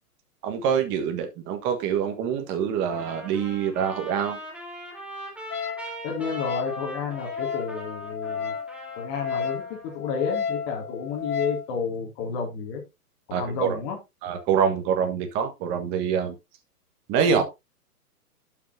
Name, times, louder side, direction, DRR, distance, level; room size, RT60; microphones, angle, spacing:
voice 1, 0.4-4.4 13.3-13.8 14.2-16.3 17.1-17.4, right 7 dB, 25° right, 6 dB, 1.4 m, -25 dB
Trumpet, 2.9-9.9, right 1 dB, 5° right, 3.1 m, -41 dB
Wind instrument woodwind instrument, 5.5-11.7, left 6 dB, 70° left, 1.0 m, -33 dB
voice 2, 6.0-8.5 8.9-12.8 13.3-14.0 17.3-17.4, left 5 dB, 35° left, 0 dB, 2.5 m, -31 dB
12.0 x 6.0 x 2.7 m, 0.23 s
hypercardioid pair, 130°, 46 cm